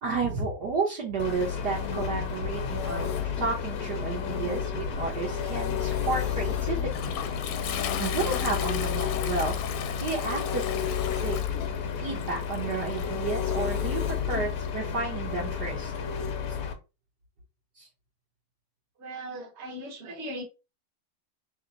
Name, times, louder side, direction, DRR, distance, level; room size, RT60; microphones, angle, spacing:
voice 1, 0.0-7.1 8.0-9.6 9.9-11.4 12.0-15.9 17.8-17.9, right 4 dB, 60° right, -3 dB, 1.3 m, -32 dB
Engine, 1.2-16.7, left 7 dB, 70° left, 0.9 m, -31 dB
Toilet flush, 6.7-14.7, left 10 dB, 90° left, 1.5 m, -38 dB
voice 2, 19.0-20.4, right 1 dB, 40° right, 0 dB, 1.2 m, -38 dB
3.4 x 2.8 x 3.8 m, 0.28 s
omnidirectional pair, 2.3 m